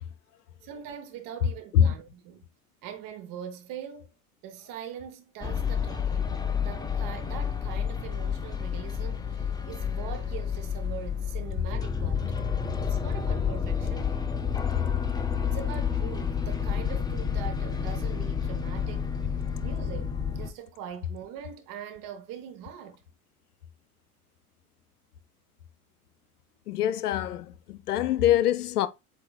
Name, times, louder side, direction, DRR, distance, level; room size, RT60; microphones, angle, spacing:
voice 1, 0.6-2.5 2.8-4.1 4.4-6.3 6.6-12.3 12.8-14.2 15.4-23.0, right 9 dB, 50° right, 1.0 m, -42 dB
sound 1, 5.4-20.5, left 7 dB, 10° left, 0.5 m, -30 dB
voice 2, 26.7-28.9, left 10 dB, 85° left, 0.6 m, -24 dB
7.7 x 2.8 x 2.3 m
hypercardioid pair, 75°, 44 cm